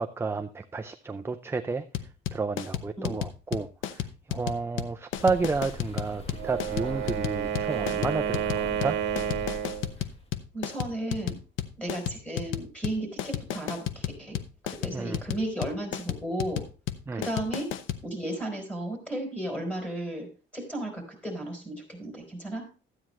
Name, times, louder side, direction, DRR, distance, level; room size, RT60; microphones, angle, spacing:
voice 1, 0.0-1.9 2.3-9.0 14.9-15.2 17.1-17.2, right 4 dB, 10° right, 7 dB, 0.4 m, -31 dB
sound 1, 1.9-18.0, left 11 dB, 85° left, 0.8 m, -33 dB
sound 2, 5.1-10.3, equal, 30° left, 1.7 m, -42 dB
Wind instrument woodwind instrument, 6.3-9.9, right 9 dB, 90° right, 1.2 m, -30 dB
voice 2, 10.5-11.4 11.8-14.4 14.6-16.6 17.1-17.7 18.0-20.3 20.5-22.7, right 1 dB, 5° left, 3 dB, 3.9 m, -34 dB
13.0 x 8.8 x 3.1 m, 0.35 s
cardioid pair, 125°, 20 cm